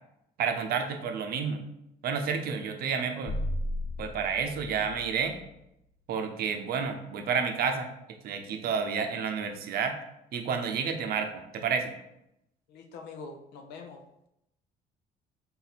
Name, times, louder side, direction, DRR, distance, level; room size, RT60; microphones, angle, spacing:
voice 1, 0.4-1.6 2.0-3.4 4.0-5.4 6.1-10.0 10.3-11.9, right 6 dB, 65° right, 6 dB, 0.6 m, -30 dB
sound 1, 3.3-5.7, left 1 dB, 35° left, 0.4 m, -35 dB
voice 2, 12.7-14.0, left 4 dB, 80° left, 3 dB, 0.7 m, -44 dB
3.9 x 2.8 x 4.1 m, 0.83 s
cardioid pair, 110°, 17 cm